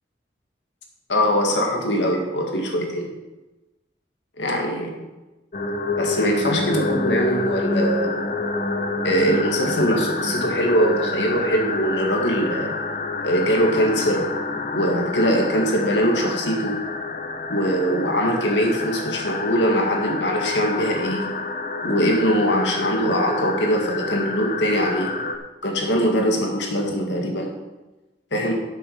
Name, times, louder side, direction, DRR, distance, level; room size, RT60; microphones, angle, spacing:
voice 1, 1.1-3.1 4.4-5.0 6.0-8.1 9.0-12.7 13.2-14.3 14.7-16.8 17.5-21.3 21.8-25.1 25.6-27.5 28.3-28.5, equal, 75° left, 1 dB, 2.1 m, -22 dB
sound 1, 5.5-25.4, left 3 dB, 40° left, 0.8 m, -28 dB
9.7 x 7.7 x 5.6 m, 1.1 s
head